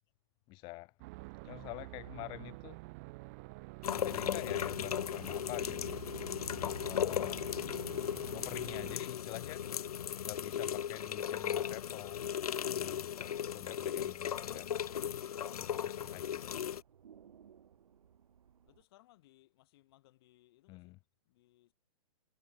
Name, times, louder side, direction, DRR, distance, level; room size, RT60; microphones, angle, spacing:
voice 1, 0.5-0.9 1.5-2.8 3.9-5.9 6.8-7.5 8.3-9.8 10.2-12.3 12.7-14.8 15.6-16.6 20.7-21.0, left 23 dB, 25° left, 1.2 m, -47 dB
sound 1, 1.0-9.0, right 26 dB, 25° right, 0.6 m, -48 dB
voice 2, 1.4-1.9 18.7-21.0 21.3-21.7, left 17 dB, 40° left, 7.6 m, -65 dB
sound 2, 3.8-16.8, left 9 dB, 85° left, 0.7 m, -37 dB
sound 3, 5.4-18.9, right 8 dB, 75° right, 5.7 m, -65 dB
hypercardioid pair, 160°, 19 cm